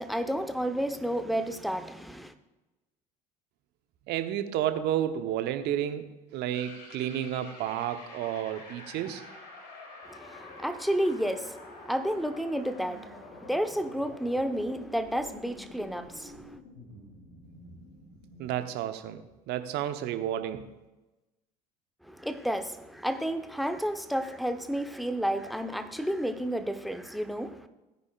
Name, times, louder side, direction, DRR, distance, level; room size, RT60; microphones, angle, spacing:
voice 1, 0.0-2.3 10.0-16.6 22.0-27.7, equal, ahead, 10 dB, 0.9 m, -31 dB
voice 2, 4.1-9.2 18.4-20.7, right 11 dB, 55° right, 9 dB, 1.0 m, -31 dB
sound 1, 6.5-18.6, left 2 dB, 70° left, 2.6 m, -48 dB
17.0 x 9.6 x 2.5 m, 1.1 s
figure-of-eight pair, 65°, 21 cm